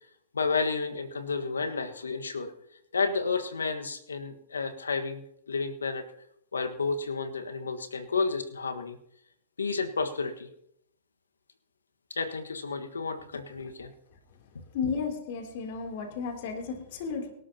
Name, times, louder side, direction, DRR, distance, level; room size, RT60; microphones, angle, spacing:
voice 1, 0.3-2.5 2.9-6.0 6.5-9.0 9.6-10.5 12.1-13.9, left 4 dB, 80° left, 7 dB, 1.6 m, -31 dB
voice 2, 14.7-17.3, left 5 dB, 55° left, 3 dB, 3.2 m, -33 dB
24.0 x 12.5 x 2.9 m, 0.75 s
figure-of-eight pair, 105°, 0 cm